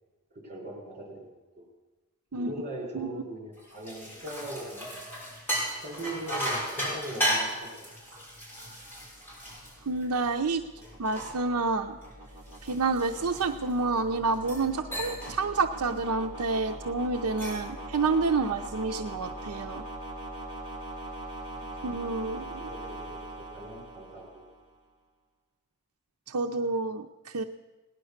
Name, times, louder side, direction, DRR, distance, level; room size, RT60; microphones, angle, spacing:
voice 1, 0.3-1.3 1.6-1.7 2.3-5.0 5.8-7.7 21.5-21.8 22.6-24.4, right 1 dB, 35° right, 0 dB, 4.2 m, -40 dB
sound 1, 3.6-10.4 10.8-13.8 14.3-14.7 14.9-15.4 15.7-16.0 17.1-17.7, equal, 10° left, 5.9 m, -35 dB
sound 2, 8.5-24.7, right 1 dB, 20° right, 2.4 m, -42 dB
voice 2, 9.9-10.6 11.0-12.0 12.6-19.8 21.8-22.7 26.3-27.4, right 3 dB, 80° right, 4 dB, 0.7 m, -29 dB
18.0 x 10.5 x 6.5 m, 1.2 s
head